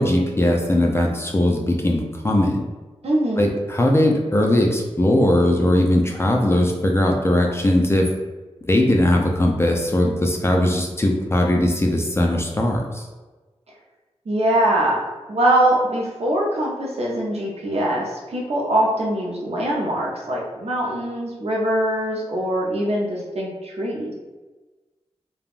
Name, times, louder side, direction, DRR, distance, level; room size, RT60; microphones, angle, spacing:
voice 1, 0.0-2.6 3.4-8.1 8.7-13.0, left 1 dB, 20° left, 1 dB, 0.4 m, -19 dB
voice 2, 3.0-3.5 14.3-15.0 15.3-24.1, right 1 dB, 65° right, -3 dB, 0.6 m, -22 dB
3.4 x 2.2 x 2.4 m, 1.2 s
wide cardioid pair, 80°, 11 cm